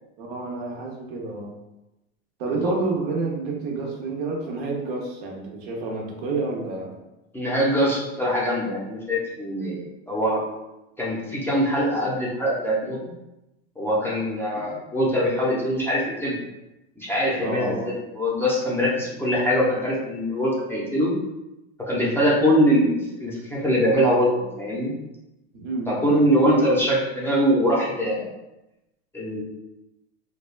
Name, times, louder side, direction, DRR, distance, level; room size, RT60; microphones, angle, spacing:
voice 1, 0.2-1.5 2.4-7.0 9.7-9.9 17.3-17.9 25.5-26.1 26.4-26.7, right 3 dB, 65° right, 0 dB, 0.8 m, -29 dB
voice 2, 7.3-9.8 10.1-10.4 11.0-13.0 13.8-16.4 17.0-21.1 21.8-24.3 24.6-24.9 25.9-28.3 29.1-29.4, equal, 5° left, -6 dB, 0.5 m, -23 dB
3.4 x 2.3 x 2.4 m, 0.94 s
supercardioid pair, 120°, 33 cm